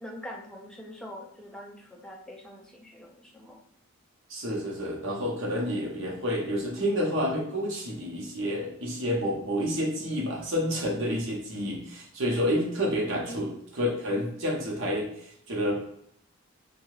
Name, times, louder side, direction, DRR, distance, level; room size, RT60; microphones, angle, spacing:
voice 1, 0.0-3.6 13.3-13.4, equal, 5° left, -1 dB, 0.3 m, -43 dB
voice 2, 4.3-15.8, equal, 65° right, -2 dB, 0.8 m, -29 dB
2.7 x 2.2 x 3.1 m, 0.70 s
head